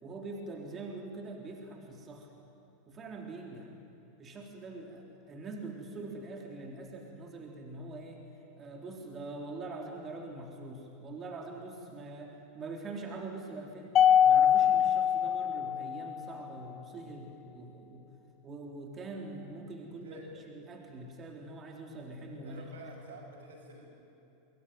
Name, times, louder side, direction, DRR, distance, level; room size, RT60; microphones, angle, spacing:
voice 1, 0.0-2.3 2.9-3.7 4.2-8.2 8.6-14.0 14.2-18.0 18.4-22.9, right 2 dB, 30° right, 1 dB, 3.6 m, -44 dB
Mallet percussion, 14.0-16.4, left 9 dB, 35° left, 0.5 m, -24 dB
voice 2, 19.9-20.3 22.4-23.9, right 2 dB, 85° right, 2 dB, 6.5 m, -50 dB
23.5 x 23.0 x 9.4 m, 2.8 s
hypercardioid pair, 105°, 0 cm